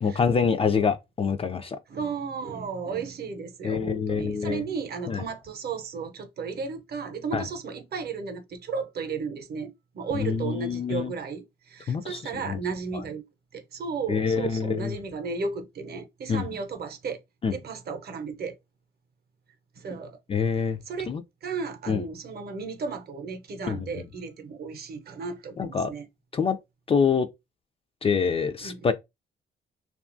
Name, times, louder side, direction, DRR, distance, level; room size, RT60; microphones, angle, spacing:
voice 1, 0.0-1.8 3.6-4.6 5.1-5.2 7.3-7.5 10.1-11.1 11.9-12.6 14.1-15.0 16.3-16.5 17.4-17.6 20.3-20.8 21.1-21.2 21.9-22.0 23.7-24.0 25.6-25.9 26.3-26.6 26.9-27.3 28.0-28.9, left 6 dB, 30° left, 0.3 m, -26 dB
voice 2, 1.9-13.2 13.5-17.2 17.5-18.5 19.8-20.2 20.5-21.1 21.4-26.0 28.6-28.9, right 5 dB, 50° right, 0.7 m, -34 dB
2.7 x 2.3 x 2.5 m
cardioid pair, 90°, 20 cm